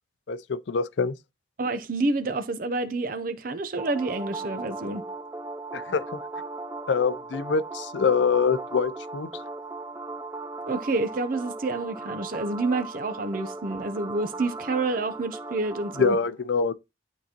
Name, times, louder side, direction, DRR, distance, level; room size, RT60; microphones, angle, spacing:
voice 1, 0.3-1.1 5.7-6.0 6.9-9.3 16.0-16.7, left 5 dB, 75° left, 0.5 m, -24 dB
voice 2, 1.6-5.0 10.7-16.2, right 3 dB, 50° right, 0.6 m, -28 dB
sound 1, 3.8-16.1, right 3 dB, 15° right, 0.3 m, -37 dB
11.5 x 3.9 x 2.9 m
head